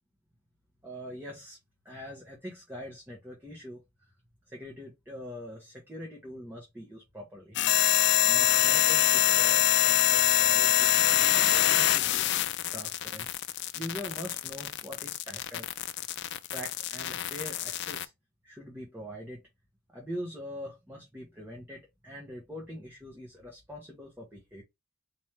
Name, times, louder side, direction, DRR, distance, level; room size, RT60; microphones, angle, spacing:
voice 1, 0.8-1.6 1.8-3.8 4.5-7.6 8.2-12.3 12.7-13.3 13.7-15.7 16.5-18.1 18.4-19.4 19.9-24.6, equal, 10° right, 1.3 m, -43 dB
sound 1, 7.6-18.1, left 13 dB, 60° left, 0.4 m, -25 dB
4.4 x 3.1 x 3.3 m
head